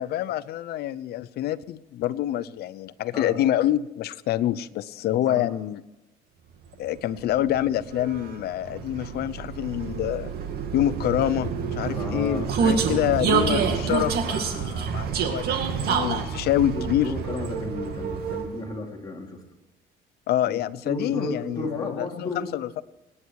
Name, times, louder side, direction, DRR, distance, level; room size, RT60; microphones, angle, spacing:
voice 1, 0.0-5.8 6.8-10.3 10.7-17.1 20.3-22.8, left 12 dB, 70° left, 16 dB, 0.8 m, -26 dB
voice 2, 3.1-3.4 5.2-5.6 11.9-12.5 16.7-19.4 20.4-22.8, left 2 dB, 20° left, 0 dB, 3.4 m, -34 dB
Vehicle, 6.8-18.7, right 6 dB, 70° right, 2.3 m, -28 dB
25.5 x 9.8 x 4.8 m, 1.0 s
cardioid pair, 110°, 17 cm